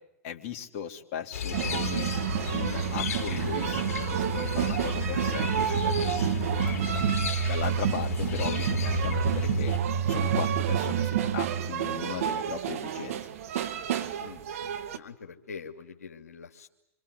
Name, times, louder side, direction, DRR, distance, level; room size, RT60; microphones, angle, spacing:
voice 1, 0.2-2.1 2.5-3.8 4.1-7.0 7.5-9.7 10.1-13.2, left 8 dB, 50° left, 2 dB, 3.2 m, -38 dB
sound 1, 1.3-9.8, left 8 dB, 65° left, 4.0 m, -34 dB
sound 2, 1.5-15.0, right 8 dB, 65° right, 2.1 m, -29 dB
voice 2, 14.2-16.7, left 5 dB, 85° left, 3 dB, 2.7 m, -45 dB
27.5 x 25.5 x 8.3 m, 0.82 s
hypercardioid pair, 110°, 8 cm